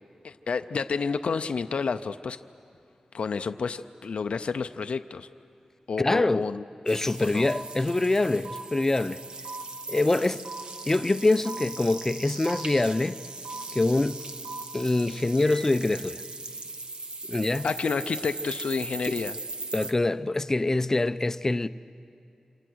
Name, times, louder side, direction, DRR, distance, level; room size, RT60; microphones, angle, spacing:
voice 1, 0.2-2.4 3.1-5.3 5.9-6.6 7.2-7.5 17.6-19.3, left 5 dB, 70° left, 0.5 m, -30 dB
voice 2, 6.0-6.5 6.9-9.2 9.9-10.5 10.9-13.2 13.7-14.2 14.7-16.2 17.3-17.7 19.1-19.2 19.7-21.7, left 2 dB, 25° left, 0.5 m, -25 dB
sound 1, 6.9-19.9, right 3 dB, 50° right, 1.1 m, -40 dB
sound 2, 7.4-7.6 8.4-8.6 9.4-9.6 10.4-10.6 11.4-11.6 12.4-12.6 13.4-13.6 14.4-14.6 15.4-15.6, right 3 dB, 85° right, 2.9 m, -38 dB
28.0 x 26.5 x 6.3 m
wide cardioid pair, 125°, 2 cm